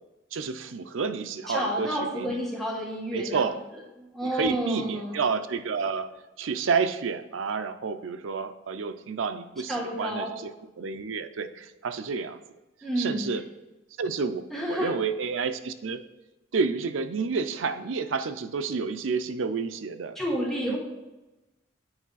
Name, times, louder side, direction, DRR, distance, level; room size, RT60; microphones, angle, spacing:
voice 1, 0.3-2.4 3.1-3.6 4.2-12.4 13.0-13.4 14.0-16.0 16.5-20.2 20.7-20.8, right 5 dB, 85° right, 10 dB, 0.5 m, -30 dB
voice 2, 1.5-3.4 4.0-5.2 9.7-10.3 12.8-13.3 14.5-14.9 20.1-20.8, equal, ahead, -3 dB, 1.3 m, -30 dB
8.7 x 4.6 x 4.0 m, 1.0 s
head